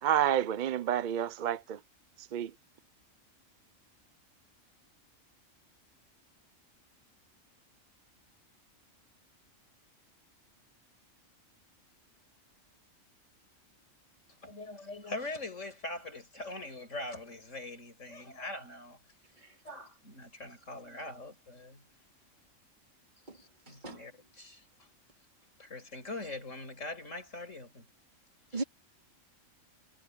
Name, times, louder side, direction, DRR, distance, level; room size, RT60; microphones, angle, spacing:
voice 1, 0.0-1.8 2.2-2.5, right 10 dB, 50° right, 0.6 m, -29 dB
voice 2, 14.4-19.0 19.6-21.8 23.3-24.1 24.4-24.6 25.6-27.8 28.5-28.6, left 2 dB, 65° left, 6.4 m, -42 dB
voice 3, 23.7-24.0 28.5-28.6, right 3 dB, 35° right, 3.4 m, -38 dB
omnidirectional pair, 1.4 m